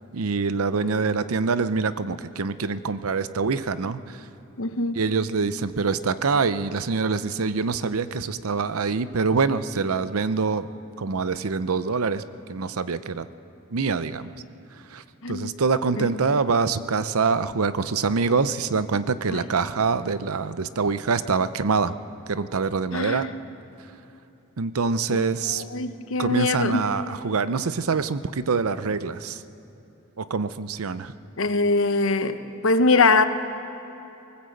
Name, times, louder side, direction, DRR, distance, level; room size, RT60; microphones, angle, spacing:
voice 1, 0.1-4.3 5.0-10.7 11.0-13.3 13.7-14.3 14.7-21.9 22.3-23.3 24.6-25.6 26.2-29.4 30.2-31.1, right 4 dB, 85° right, 14 dB, 0.7 m, -25 dB
voice 2, 4.6-5.0 15.2-15.5 16.0-16.1 19.3-19.4 22.9-23.3 25.1-26.9 31.4-33.2, left 3 dB, 65° left, 10 dB, 1.0 m, -23 dB
20.0 x 19.0 x 7.9 m, 2.9 s
head